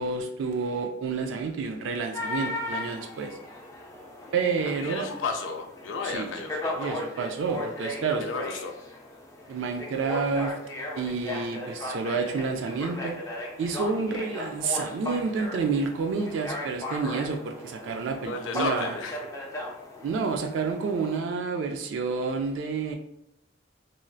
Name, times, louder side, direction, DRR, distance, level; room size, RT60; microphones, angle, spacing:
voice 1, 0.0-3.4 4.3-5.1 6.0-6.3 6.7-8.2 9.5-10.5 11.0-13.2 13.6-18.9 20.0-22.9, right 4 dB, 75° right, 4 dB, 0.3 m, -29 dB
sound 1, 2.1-21.2, left 1 dB, 15° left, 0.4 m, -37 dB
voice 2, 4.6-6.9 8.1-8.7 18.2-19.3, left 4 dB, 80° left, 5 dB, 0.4 m, -33 dB
3.0 x 2.6 x 2.3 m, 0.79 s
head